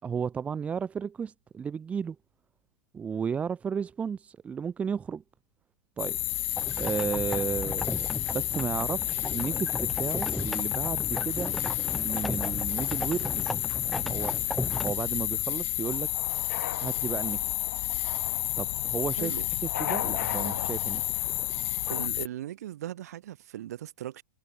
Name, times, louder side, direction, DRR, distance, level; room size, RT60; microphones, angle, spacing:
voice 1, 0.0-2.2 2.9-5.2 6.0-6.2 6.8-11.6 11.9-13.5 13.8-14.3 14.8-16.1 16.8-17.5 18.6-19.3 19.8-21.2, right 6 dB, 15° right, 5.1 m, -33 dB
sound 1, 6.0-22.3, left 18 dB, 50° left, 1.1 m, -31 dB
sound 2, 6.6-14.9, left 1 dB, ahead, 2.7 m, -36 dB
sound 3, 15.8-22.1, left 10 dB, 75° left, 2.4 m, -39 dB
voice 2, 21.9-24.2, right 12 dB, 65° right, 5.6 m, -38 dB
hypercardioid pair, 150°, 9 cm